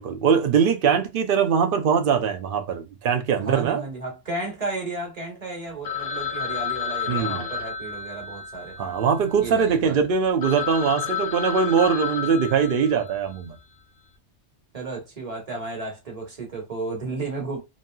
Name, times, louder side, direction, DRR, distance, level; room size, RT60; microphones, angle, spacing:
voice 1, 0.0-3.8 7.1-7.5 8.8-13.6, right 6 dB, 60° right, 0.6 m, -22 dB
voice 2, 3.4-9.0 9.4-10.0 14.7-17.6, right 3 dB, 35° right, 1.1 m, -33 dB
Telephone, 5.8-9.6 10.1-10.2 10.4-13.3, left 7 dB, 55° left, 0.8 m, -31 dB
3.0 x 2.8 x 2.2 m
omnidirectional pair, 1.2 m